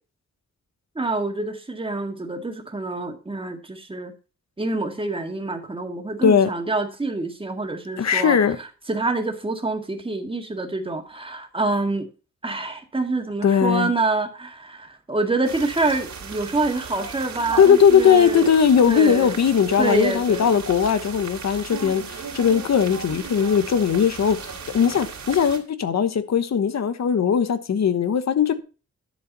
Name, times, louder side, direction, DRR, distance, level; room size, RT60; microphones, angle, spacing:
voice 1, 1.0-4.1 4.6-8.4 8.9-12.1 12.4-18.5 18.9-19.3 19.8-20.6, right 2 dB, 20° right, 1.9 m, -26 dB
voice 2, 8.0-8.6 13.4-13.9 17.6-28.6, left 7 dB, 65° left, 1.2 m, -19 dB
sound 1, 15.4-25.6, right 5 dB, 70° right, 2.8 m, -36 dB
11.0 x 7.3 x 4.1 m
wide cardioid pair, 130°, 29 cm